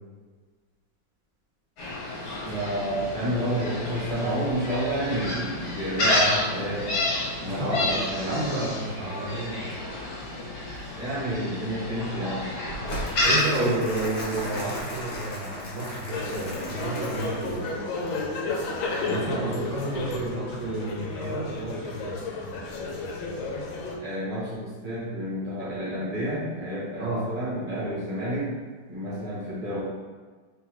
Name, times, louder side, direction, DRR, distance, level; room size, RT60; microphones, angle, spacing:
Gull seagull, 1.8-13.4, left 1 dB, 55° left, 1.6 m, -30 dB
voice 1, 2.4-6.9 7.4-8.4 11.0-12.5 13.6-13.7 19.0-19.7 24.0-28.5 28.9-29.8, right 1 dB, 20° right, -9 dB, 1.2 m, -30 dB
voice 2, 7.5-9.8 13.2-17.7 19.0-22.2 27.0-27.3, right 2 dB, 75° right, -5 dB, 1.9 m, -31 dB
Crumpling crinkling, 12.9-17.7, equal, 35° left, 0.9 m, -36 dB
sound 1, 16.1-24.0, left 3 dB, 80° left, 1.4 m, -32 dB
4.0 x 3.8 x 3.0 m, 1.5 s
omnidirectional pair, 2.2 m